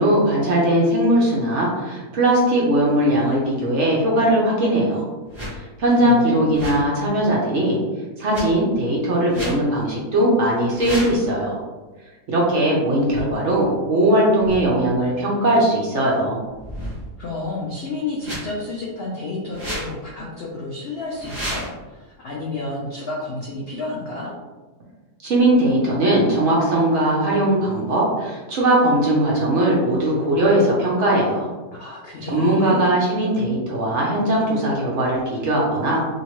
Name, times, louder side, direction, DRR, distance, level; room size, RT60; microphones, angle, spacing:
voice 1, 0.0-5.1 5.6-7.8 8.2-11.6 12.3-16.4 25.2-31.5 32.2-36.1, right 1 dB, 60° right, -4 dB, 0.8 m, -19 dB
sound 1, 5.3-5.6 6.4-6.9 8.3-8.4 9.3-9.6 10.6-11.2 13.1-13.2 14.4-14.6 16.5-17.2 18.2-18.4 19.5-19.9 21.1-21.7, equal, 20° right, 1.0 m, -31 dB
voice 2, 6.0-6.4 17.2-24.3 31.7-32.9, left 2 dB, 80° left, -4 dB, 0.5 m, -30 dB
2.9 x 2.7 x 2.9 m, 1.3 s
omnidirectional pair, 1.7 m